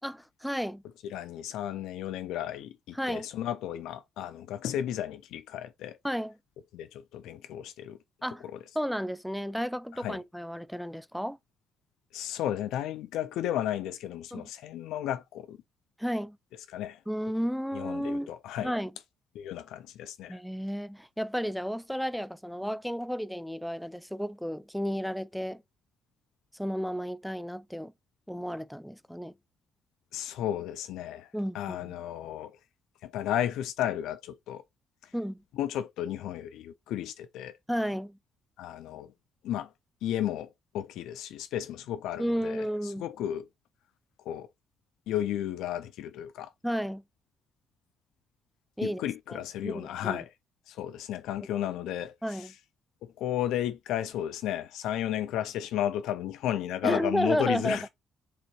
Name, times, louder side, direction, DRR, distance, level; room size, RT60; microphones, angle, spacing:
voice 1, 0.0-0.8 2.9-3.3 6.0-6.3 8.2-8.4 8.8-11.4 14.3-14.5 16.0-16.4 17.1-18.3 18.6-18.9 20.3-25.6 26.6-27.9 28.3-29.3 31.3-31.9 35.1-35.4 37.7-38.2 42.2-43.1 46.6-47.0 48.8-49.0 49.3-50.2 52.2-52.5 56.8-57.9, equal, ahead, 0.3 m, -32 dB
voice 2, 1.1-6.0 6.7-8.0 10.0-10.2 12.1-15.6 16.7-17.0 17.7-18.7 19.4-20.4 30.1-31.3 31.5-32.5 33.0-34.6 35.6-37.6 38.6-39.1 39.4-39.7 40.0-40.5 40.7-43.5 44.3-44.5 45.1-46.5 48.8-50.3 50.7-52.5 53.2-57.9, left 11 dB, 90° left, 0.4 m, -33 dB
6.6 x 2.7 x 2.9 m
cardioid pair, 90°, 0 cm